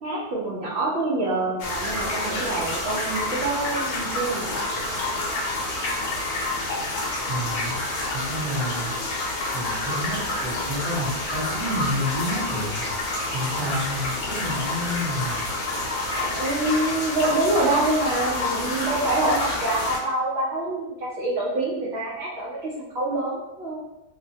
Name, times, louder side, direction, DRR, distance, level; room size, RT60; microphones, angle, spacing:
voice 1, 0.0-5.5 16.2-23.8, right 2 dB, 65° right, -7 dB, 0.6 m, -26 dB
sound 1, 1.6-20.0, left 2 dB, 70° left, 1.0 m, -28 dB
voice 2, 7.3-7.8 8.1-8.9 9.5-12.8 13.3-15.4, equal, 25° right, -8 dB, 0.7 m, -29 dB
2.9 x 2.1 x 2.7 m, 0.93 s
omnidirectional pair, 1.8 m